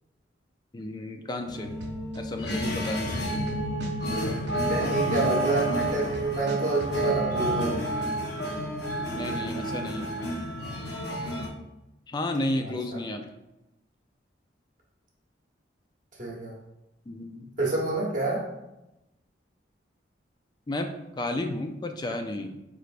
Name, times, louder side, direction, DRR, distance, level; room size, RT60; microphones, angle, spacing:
voice 1, 0.7-1.8 2.1-3.4 9.1-10.1 12.1-13.2 17.1-17.5 20.7-22.6, left 1 dB, 25° left, 5 dB, 0.3 m, -32 dB
sound 1, 1.5-11.5, right 1 dB, 60° left, 0.7 m, -30 dB
sound 2, 1.8-2.2 2.5-4.8 5.1-6.9, right 1 dB, 65° right, 0.7 m, -39 dB
voice 2, 4.6-7.8 12.6-13.0 16.2-16.5 17.6-18.4, right 2 dB, 45° right, -4 dB, 1.0 m, -28 dB
4.8 x 3.3 x 2.5 m, 0.94 s
head